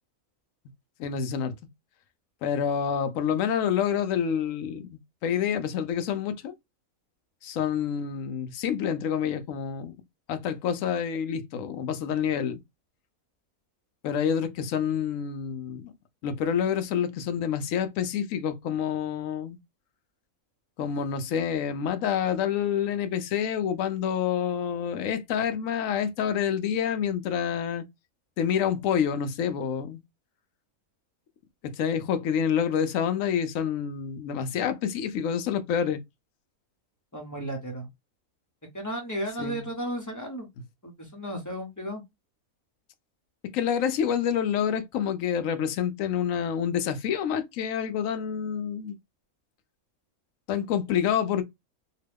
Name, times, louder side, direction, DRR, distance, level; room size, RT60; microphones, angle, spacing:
voice 1, 1.0-1.5 2.4-6.5 7.4-9.9 10.3-12.6 14.0-15.9 16.2-19.6 20.8-27.8 28.4-30.0 31.6-36.0 39.4-39.7 43.5-48.9 50.5-51.4, left 8 dB, 70° left, 0.9 m, -28 dB
voice 2, 37.1-37.9 38.7-40.5 40.8-42.0, equal, 15° left, 0.7 m, -34 dB
2.9 x 2.2 x 3.3 m
omnidirectional pair, 1.6 m